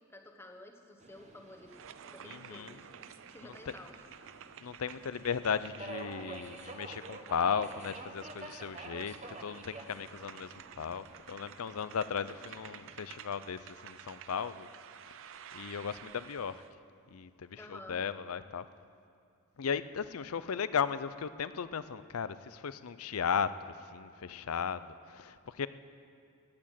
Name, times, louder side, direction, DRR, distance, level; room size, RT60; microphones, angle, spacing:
voice 1, 0.1-4.0 17.6-18.0, left 1 dB, 10° left, 3 dB, 1.1 m, -52 dB
Subway metro underground, 1.0-13.0, right 3 dB, 30° right, 1.1 m, -50 dB
sound 1, 1.7-16.7, right 9 dB, 65° right, 0.5 m, -52 dB
voice 2, 2.2-2.8 4.6-14.7 15.5-16.6 17.1-18.6 19.6-23.5 23.9-25.7, left 6 dB, 75° left, 14 dB, 0.5 m, -36 dB
17.0 x 8.7 x 7.6 m, 2.4 s
head